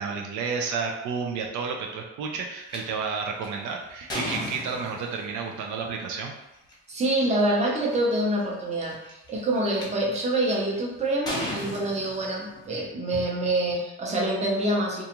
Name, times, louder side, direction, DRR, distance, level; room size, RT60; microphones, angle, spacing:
voice 1, 0.0-6.3, right 5 dB, 75° right, 1 dB, 0.5 m, -31 dB
sound 1, 2.7-2.8 3.4-5.3 6.5-6.7 7.4-7.5 7.7-8.1 8.9-9.8 10.5-10.8 11.3-12.7, left 1 dB, 15° left, 0.8 m, -34 dB
voice 2, 6.9-9.0 9.3-15.0, right 1 dB, 25° right, -3 dB, 0.6 m, -26 dB
2.5 x 2.3 x 2.9 m, 0.94 s
cardioid pair, 120°, 30 cm